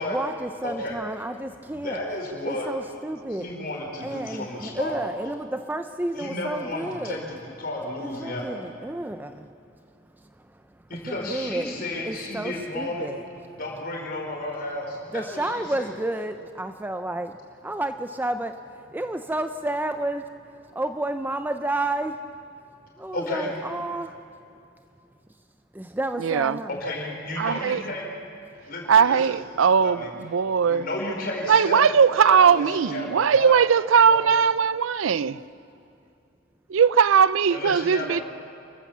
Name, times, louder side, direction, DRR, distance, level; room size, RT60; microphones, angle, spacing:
voice 1, 0.1-2.0 2.4-3.5 4.0-7.2 8.0-9.6 11.1-13.3 15.1-17.4 17.6-18.5 18.9-20.3 20.7-22.2 23.0-24.2 25.7-26.8, right 1 dB, 10° right, 0.5 m, -31 dB
voice 2, 0.6-1.0 1.7-2.7 3.4-5.0 6.1-8.5 10.9-13.1 13.5-15.9 23.1-23.7 26.7-28.1 28.6-29.4 29.8-30.1 30.6-32.0 32.3-33.6 34.1-34.3 37.5-38.2, left 1 dB, 50° left, 4.6 m, -32 dB
voice 3, 26.2-26.6 27.4-27.8 28.9-30.9 31.5-35.4 36.7-38.2, right 6 dB, 75° right, 0.4 m, -19 dB
28.0 x 14.5 x 7.3 m
head